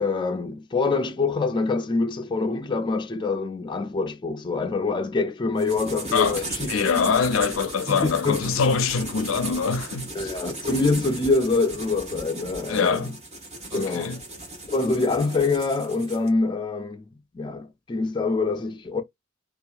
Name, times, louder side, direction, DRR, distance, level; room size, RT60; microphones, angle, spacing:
voice 1, 0.0-6.7 7.1-7.2 7.9-8.4 10.2-13.1 13.7-14.1 14.7-17.1 17.3-19.0, left 3 dB, 25° left, 0.4 m, -25 dB
sound 1, 5.6-16.3, right 1 dB, 35° right, 1.1 m, -36 dB
voice 2, 6.1-10.3 12.7-13.2 13.7-14.2, left 5 dB, 85° left, 0.5 m, -24 dB
2.7 x 2.4 x 2.3 m
head